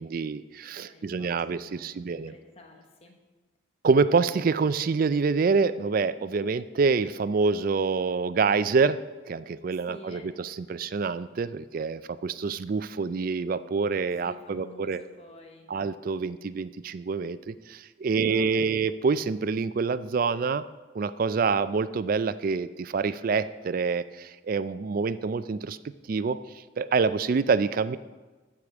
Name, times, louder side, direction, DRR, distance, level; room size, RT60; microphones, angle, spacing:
voice 1, 0.0-2.3 3.8-9.0 9.3-15.0 15.7-20.7 20.9-25.8 26.1-28.0, right 4 dB, 45° right, 14 dB, 0.3 m, -26 dB
voice 2, 0.7-3.1 9.7-10.3 14.2-15.7 18.1-18.8, left 2 dB, 30° left, 2 dB, 1.0 m, -50 dB
14.0 x 4.9 x 6.0 m, 1.2 s
head